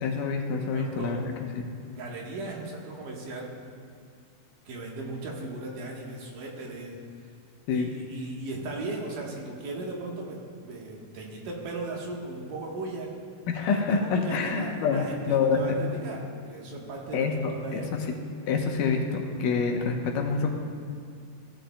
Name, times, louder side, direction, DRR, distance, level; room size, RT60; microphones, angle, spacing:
voice 1, 0.0-1.2 7.7-7.9 13.5-15.8 17.1-17.8 18.5-20.5, left 5 dB, 75° left, 2 dB, 2.4 m, -26 dB
voice 2, 0.7-1.3 2.0-3.5 4.7-7.0 7.7-13.1 13.7-17.9, right 2 dB, 70° right, -2 dB, 2.8 m, -37 dB
16.5 x 11.5 x 2.2 m, 2.2 s
omnidirectional pair, 3.9 m